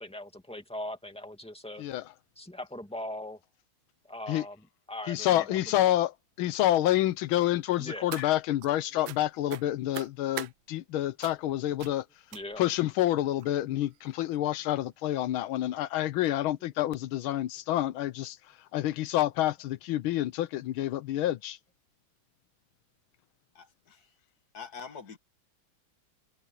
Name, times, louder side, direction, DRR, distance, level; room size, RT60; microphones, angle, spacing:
voice 1, 0.0-1.8 2.4-3.4 4.1-4.6 4.9-5.7 7.8-8.1 12.3-12.6, left 1 dB, 5° left, 2.2 m, -40 dB
voice 2, 5.1-12.0 12.6-18.4 18.7-21.6, left 14 dB, 80° left, 1.6 m, -28 dB
sound 1, 7.7-8.7 9.0-9.2 9.5-10.5 11.2-11.5 11.8-12.0 12.3-12.7 13.4-13.5 13.9-14.1 14.4-14.5, right 14 dB, 75° right, 1.4 m, -42 dB
voice 3, 23.5-24.1 24.5-25.2, left 6 dB, 50° left, 2.2 m, -45 dB
omnidirectional pair, 2.3 m